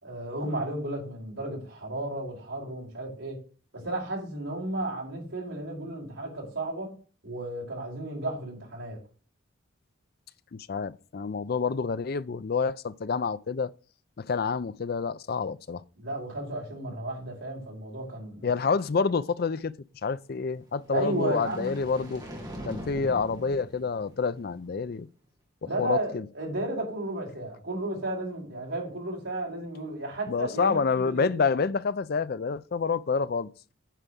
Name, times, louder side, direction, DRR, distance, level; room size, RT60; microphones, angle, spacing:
voice 1, 0.0-3.4 3.7-6.9 7.2-9.0 16.0-18.5 20.9-21.7 25.6-31.5, right 2 dB, 65° right, 5.2 m, -33 dB
voice 2, 10.5-13.7 14.2-15.8 18.4-19.7 20.0-22.2 22.6-25.1 25.6-26.3 30.3-33.5, left 5 dB, 45° left, 0.4 m, -28 dB
sound 1, 20.6-24.9, equal, 20° right, 2.2 m, -43 dB
9.1 x 4.8 x 6.9 m
head